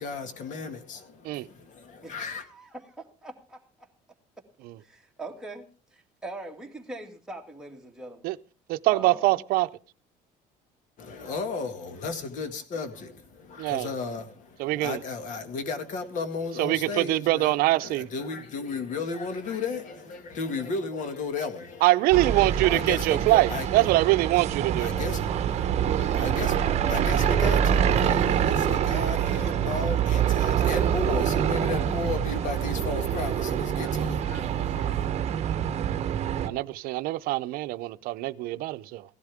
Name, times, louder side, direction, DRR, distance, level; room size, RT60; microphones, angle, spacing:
voice 1, 0.0-2.5 11.0-35.1, left 4 dB, 55° left, 2.0 m, -35 dB
voice 2, 2.0-3.9 4.8-5.7 5.9-8.3 8.9-9.4 22.6-23.9, right 2 dB, 5° right, 2.2 m, -41 dB
voice 3, 8.7-9.7 13.6-13.9 14.6-15.0 16.6-18.1 21.8-24.9 36.4-39.0, right 18 dB, 75° right, 0.6 m, -24 dB
sound 1, 22.1-36.5, right 9 dB, 45° right, 1.0 m, -25 dB
16.5 x 12.0 x 3.5 m
cardioid pair, 130°, 16 cm